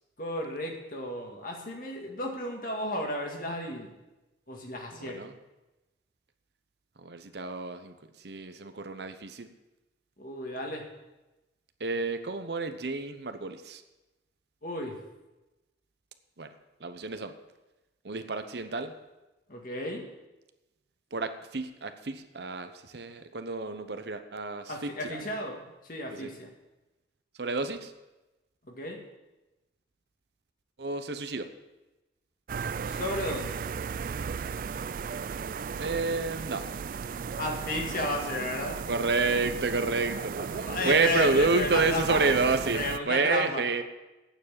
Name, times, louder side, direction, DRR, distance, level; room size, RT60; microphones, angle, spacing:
voice 1, 0.2-3.9 4.5-5.2 10.2-10.9 14.6-15.0 19.5-20.1 24.7-25.6 25.9-26.5 28.6-29.0 32.9-33.5 37.4-38.8 40.4-42.2 42.7-43.6, left 1 dB, 50° left, 1 dB, 2.0 m, -33 dB
voice 2, 4.9-5.3 7.0-9.5 11.8-13.8 16.4-16.5 16.8-17.3 18.0-19.0 21.1-25.3 26.1-26.3 27.4-27.9 30.8-31.5 35.8-36.7 38.9-43.8, right 3 dB, 65° right, 9 dB, 0.8 m, -29 dB
sound 1, 32.5-43.0, right 6 dB, 50° right, 0.3 m, -35 dB
9.0 x 7.2 x 8.7 m, 1.0 s
head